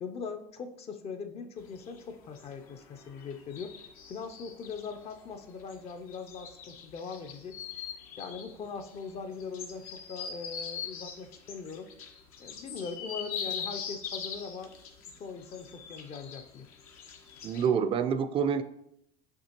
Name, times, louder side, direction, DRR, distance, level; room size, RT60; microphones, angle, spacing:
voice 1, 0.0-3.8 4.1-7.6 8.2-11.9 12.4-14.8 15.2-16.7, left 5 dB, 35° left, 7 dB, 0.4 m, -41 dB
sound 1, 1.6-17.7, left 7 dB, 85° left, 0.8 m, -42 dB
voice 2, 17.4-18.6, right 7 dB, 30° right, 11 dB, 0.4 m, -27 dB
5.9 x 2.8 x 2.8 m, 0.77 s
supercardioid pair, 95°, 18 cm